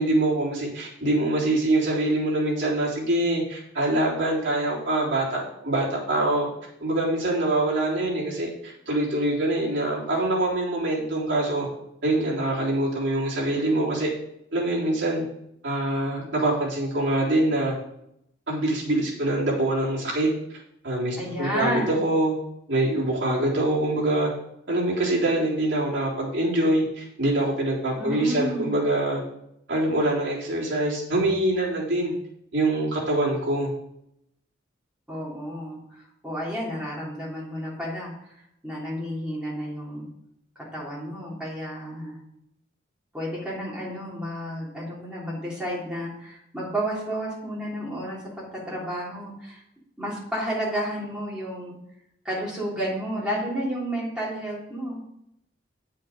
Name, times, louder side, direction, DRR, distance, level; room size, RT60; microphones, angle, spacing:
voice 1, 0.0-6.5 6.8-11.7 12.0-14.1 14.5-15.2 15.6-17.7 18.5-20.6 20.8-22.4 22.7-24.3 24.7-29.2 29.7-32.1 32.5-33.7, right 1 dB, 60° right, -5 dB, 3.6 m, -24 dB
voice 2, 21.2-22.0 28.0-28.8 35.1-38.1 38.6-40.0 40.7-42.2 43.1-49.6 50.0-51.7 52.2-55.0, equal, 5° right, -6 dB, 3.3 m, -31 dB
8.7 x 7.5 x 5.1 m, 0.78 s
head